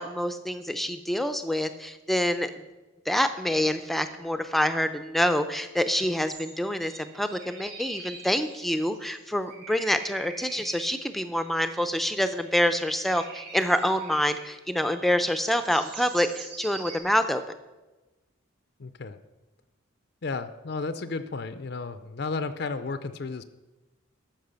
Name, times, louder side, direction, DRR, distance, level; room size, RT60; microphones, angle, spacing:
voice 1, 0.0-2.5 3.1-17.4, equal, ahead, 9 dB, 0.5 m, -26 dB
sound 1, 6.3-14.5 14.8-17.0, right 4 dB, 55° right, 4.3 m, -45 dB
voice 2, 18.8-19.2 20.2-23.4, left 4 dB, 55° left, 11 dB, 0.5 m, -33 dB
13.0 x 5.9 x 6.9 m, 1.1 s
head